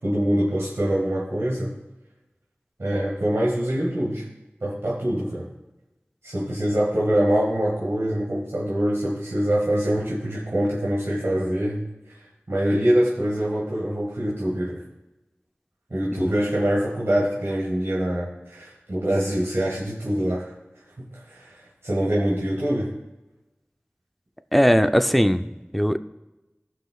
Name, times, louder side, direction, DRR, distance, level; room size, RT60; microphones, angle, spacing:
voice 1, 0.0-1.7 2.8-4.2 4.6-5.5 6.2-12.2 12.5-14.8 15.9-20.5 21.0-22.9, right 1 dB, 85° right, -7 dB, 1.8 m, -24 dB
voice 2, 24.5-26.0, equal, ahead, 9 dB, 0.5 m, -20 dB
15.5 x 5.7 x 2.4 m, 1.0 s
wide cardioid pair, 40°, 4 cm